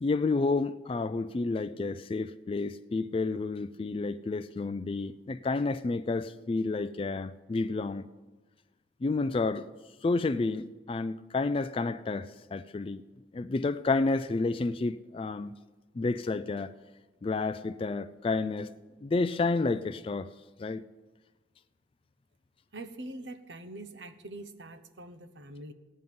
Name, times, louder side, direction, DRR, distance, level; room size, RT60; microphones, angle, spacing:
voice 1, 0.0-8.0 9.0-9.7 10.0-13.0 13.3-15.6 16.0-16.7 17.2-18.7 19.0-20.3 20.6-20.8, left 3 dB, 30° left, 0.3 m, -30 dB
voice 2, 22.7-25.7, right 2 dB, 85° right, 0.9 m, -44 dB
16.0 x 5.5 x 9.4 m
head